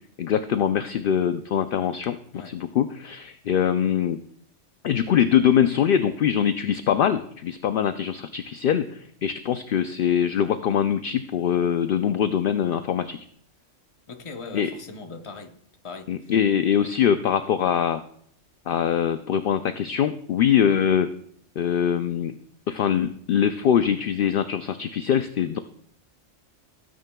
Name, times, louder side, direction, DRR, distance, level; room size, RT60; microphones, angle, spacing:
voice 1, 0.2-2.2 2.5-4.2 4.8-13.2 14.5-14.7 16.1-18.0 18.7-21.1 21.6-22.4 22.7-25.6, left 9 dB, 60° left, 0.6 m, -23 dB
voice 2, 14.1-15.6 15.8-16.3, left 4 dB, 30° left, 0.8 m, -40 dB
19.0 x 9.4 x 2.3 m
omnidirectional pair, 1.2 m